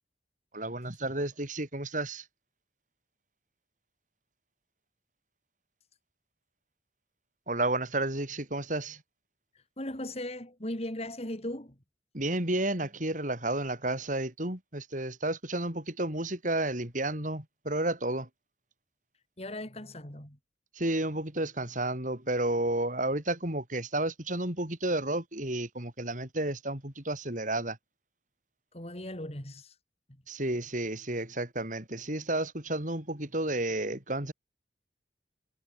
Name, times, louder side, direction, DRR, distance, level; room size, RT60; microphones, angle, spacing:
voice 1, 0.5-2.2 7.5-9.0 12.1-18.3 20.8-27.8 30.3-34.3, right 1 dB, 45° right, 5.1 m, -31 dB
voice 2, 9.8-11.8 19.4-20.4 28.7-29.7, left 1 dB, 35° left, 4.0 m, -38 dB
head